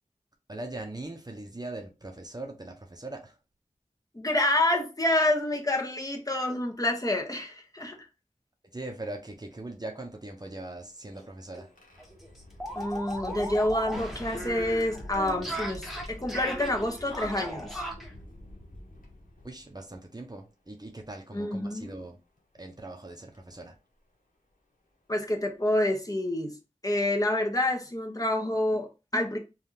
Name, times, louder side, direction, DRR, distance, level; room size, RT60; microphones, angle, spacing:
voice 1, 0.5-3.4 8.7-11.7 19.4-22.2 22.5-23.8, right 2 dB, 30° right, 0.7 m, -40 dB
voice 2, 4.1-8.0 12.7-17.9 21.3-21.9 25.1-26.6 26.8-29.4, left 1 dB, 25° left, 0.8 m, -28 dB
sound 1, 10.7-19.9 20.8-20.9 22.4-22.6 23.3-23.5 25.1-25.2 25.7-25.9, left 1 dB, 75° left, 0.9 m, -46 dB
sound 2, 11.1-11.3 11.5-11.6 12.0-18.1, equal, ahead, 1.0 m, -37 dB
3.4 x 2.4 x 2.8 m
wide cardioid pair, 40°, 14 cm